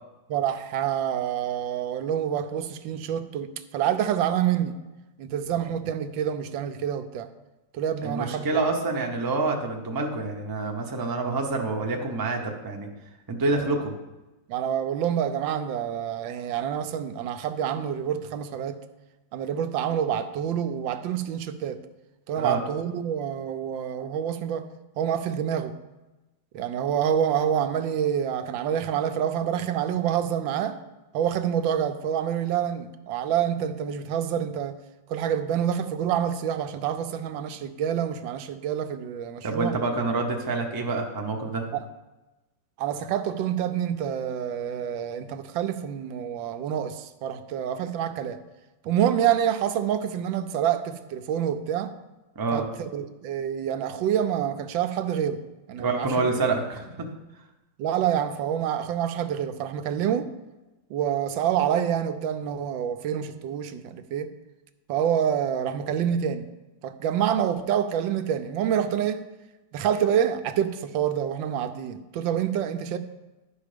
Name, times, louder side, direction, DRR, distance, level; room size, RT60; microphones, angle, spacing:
voice 1, 0.3-4.7 5.2-7.3 7.7-8.7 14.5-18.8 19.3-21.8 22.3-24.7 25.0-25.7 26.5-30.8 31.1-34.8 35.1-39.8 41.7-41.9 42.8-48.4 48.8-51.9 52.5-55.4 55.7-56.3 57.8-60.3 60.9-64.3 64.9-66.5 66.8-69.2 69.7-73.0, right 9 dB, 85° right, 1.4 m, -27 dB
voice 2, 8.0-12.9 13.3-13.9 22.4-22.6 39.4-41.7 52.3-52.7 55.8-57.1, right 3 dB, 25° right, 0.4 m, -27 dB
11.5 x 5.0 x 5.0 m
omnidirectional pair, 2.0 m